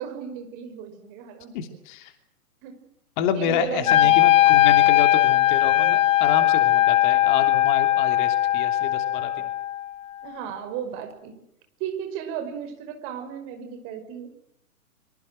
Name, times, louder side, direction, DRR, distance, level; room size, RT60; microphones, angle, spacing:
voice 1, 0.0-1.6 2.6-2.7 3.3-4.3 10.2-11.4 11.8-14.3, right 9 dB, 30° right, 7 dB, 5.5 m, -35 dB
voice 2, 1.5-2.1 3.2-9.3, left 7 dB, 30° left, 7 dB, 3.0 m, -28 dB
Wind instrument woodwind instrument, 3.9-9.9, left 14 dB, 15° left, 0.9 m, -19 dB
25.0 x 24.5 x 6.4 m, 0.78 s
figure-of-eight pair, 125°, 45 cm